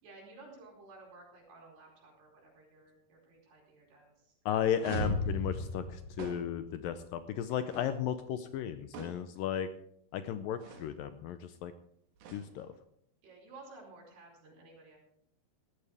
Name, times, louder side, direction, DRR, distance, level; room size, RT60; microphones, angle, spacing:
voice 1, 0.0-4.3 13.2-15.0, right 3 dB, 90° right, -2 dB, 6.8 m, -54 dB
voice 2, 4.5-9.7 10.1-11.7 12.3-12.7, left 9 dB, 80° left, 10 dB, 2.1 m, -34 dB
sound 1, 4.8-6.9, left 1 dB, 50° right, 3.6 m, -36 dB
sound 2, 4.9-5.2 6.2-6.7 7.7-8.0 8.9-9.3 10.6-11.0 12.2-12.8, right 6 dB, 70° right, 3.2 m, -49 dB
18.5 x 13.5 x 3.5 m, 0.68 s
omnidirectional pair, 4.6 m